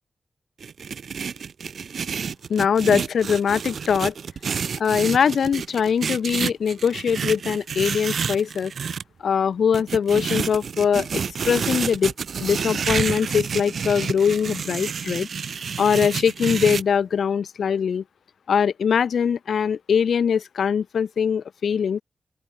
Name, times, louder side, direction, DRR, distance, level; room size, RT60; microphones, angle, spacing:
sound 1, 0.6-9.0 9.7-16.8, right 6 dB, 75° right, 6.8 m, -29 dB
voice 1, 2.5-4.1 4.8-8.7 9.2-15.3 15.8-18.0 18.5-22.0, left 7 dB, 85° left, 2.0 m, -22 dB
open air
wide cardioid pair, 85°, 0 cm